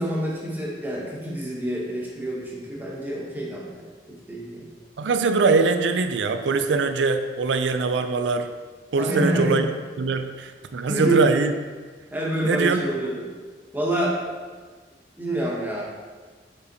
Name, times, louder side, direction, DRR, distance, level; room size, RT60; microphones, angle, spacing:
voice 1, 0.0-3.8 4.1-4.7 9.0-9.6 10.9-11.2 12.1-13.3 13.7-14.2 15.2-15.8, right 1 dB, 10° right, -4 dB, 1.1 m, -27 dB
voice 2, 5.0-8.5 8.9-9.7 10.0-11.5 12.4-12.8, right 4 dB, 85° right, 8 dB, 0.4 m, -22 dB
5.2 x 4.9 x 4.0 m, 1.5 s
head